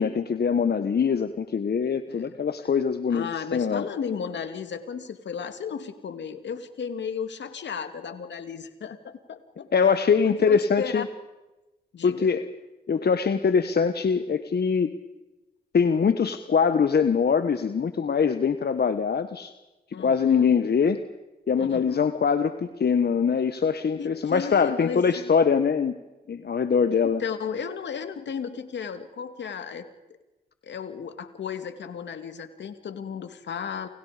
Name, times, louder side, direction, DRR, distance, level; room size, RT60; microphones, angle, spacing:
voice 1, 0.0-3.8 9.7-11.1 12.0-12.4 12.9-15.0 15.7-19.5 20.0-21.0 21.5-26.0 26.3-27.2, left 6 dB, 60° left, 10 dB, 1.4 m, -23 dB
voice 2, 3.1-9.7 10.2-11.0 11.9-12.3 19.9-20.6 21.6-22.1 24.0-25.3 27.0-29.9 30.6-33.9, left 6 dB, 75° left, 9 dB, 2.4 m, -34 dB
29.5 x 29.5 x 5.2 m, 1.0 s
supercardioid pair, 40°, 19 cm